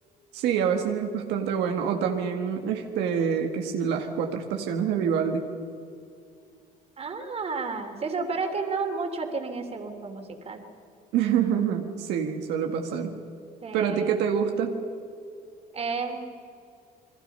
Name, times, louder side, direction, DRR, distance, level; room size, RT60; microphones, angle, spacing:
voice 1, 0.3-5.5 11.1-13.2 13.7-14.9, right 7 dB, 90° right, 3 dB, 1.8 m, -26 dB
voice 2, 7.0-10.6 13.6-14.2 15.7-16.3, right 4 dB, 35° right, 4 dB, 3.1 m, -32 dB
28.0 x 21.5 x 5.6 m, 2.4 s
cardioid pair, 110°, 17 cm